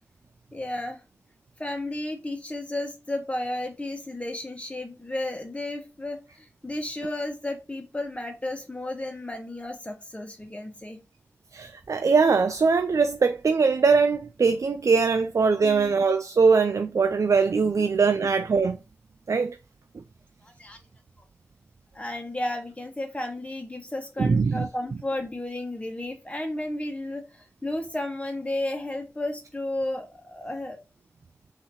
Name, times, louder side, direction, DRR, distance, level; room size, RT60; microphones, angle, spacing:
voice 1, 0.5-1.0 1.6-11.0 15.6-15.9 17.8-18.1 20.4-20.8 21.9-30.8, left 1 dB, 25° left, 1.2 m, -33 dB
voice 2, 11.5-18.8 19.3-19.6 24.2-24.7, right 5 dB, 70° right, 0.3 m, -21 dB
5.6 x 2.9 x 2.9 m
wide cardioid pair, 55°, 6 cm